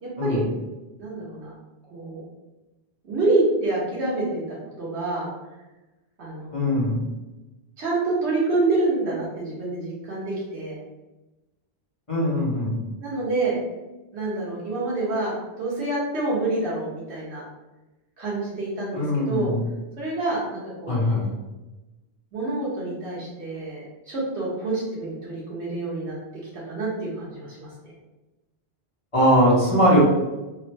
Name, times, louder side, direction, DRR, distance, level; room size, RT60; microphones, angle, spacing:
voice 1, 0.0-0.4 1.0-1.5 1.9-2.2 3.0-5.3 6.2-6.8 7.8-10.8 13.0-13.6 14.1-17.4 18.2-19.5 20.0-21.0 22.3-26.2 26.5-27.9, right 2 dB, 85° right, -6 dB, 1.5 m, -27 dB
voice 2, 6.5-7.0 12.1-12.7 18.9-19.5 20.9-21.2 29.1-30.0, equal, 30° left, -8 dB, 1.1 m, -20 dB
3.3 x 2.1 x 3.3 m, 1.1 s
omnidirectional pair, 1.1 m